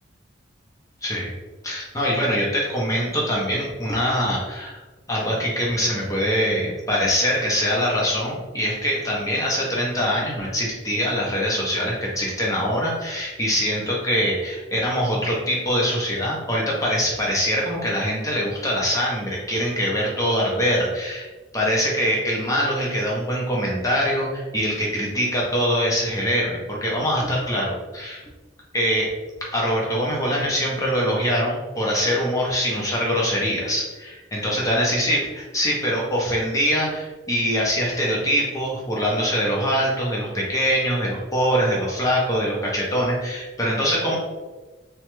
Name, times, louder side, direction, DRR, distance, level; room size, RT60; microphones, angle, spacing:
voice 1, 1.6-4.8 5.1-21.3 21.5-28.2 28.7-29.1 29.5-44.2, equal, 15° left, -3 dB, 0.7 m, -23 dB
3.1 x 2.3 x 3.1 m, 1.2 s
head